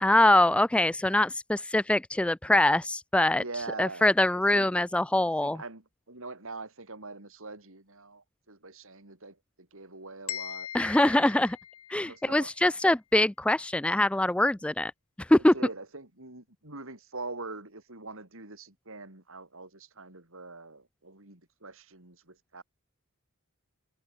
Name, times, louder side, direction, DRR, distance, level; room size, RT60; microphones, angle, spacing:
voice 1, 0.0-3.4 3.8-5.6 10.7-11.6 11.9-14.9 15.3-15.5, left 1 dB, 5° left, 0.3 m, -23 dB
voice 2, 3.3-4.7 5.4-10.7 12.0-12.5 15.4-22.6, right 3 dB, 65° right, 4.9 m, -43 dB
sound 1, 10.3-12.3, left 11 dB, 70° left, 2.0 m, -40 dB
head